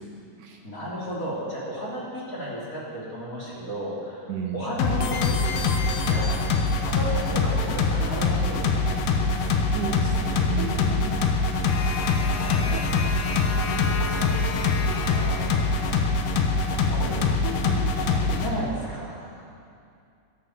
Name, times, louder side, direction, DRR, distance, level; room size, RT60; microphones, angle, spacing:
voice 1, 0.0-0.6 4.3-4.7 9.7-11.4 13.5-14.0 16.8-16.9 17.7-18.2, right 7 dB, 70° right, 2 dB, 2.7 m, -34 dB
voice 2, 0.6-5.4 6.0-6.5 6.8-9.1 12.4-13.0 14.0-14.3 14.8-15.6 16.7-17.3 17.9-19.4, equal, 25° left, -6 dB, 3.2 m, -34 dB
sound 1, 4.8-18.5, left 3 dB, 90° left, 2.7 m, -24 dB
sound 2, 5.0-7.3, left 5 dB, 60° left, 1.7 m, -36 dB
13.0 x 12.0 x 8.0 m, 2.5 s
omnidirectional pair, 3.6 m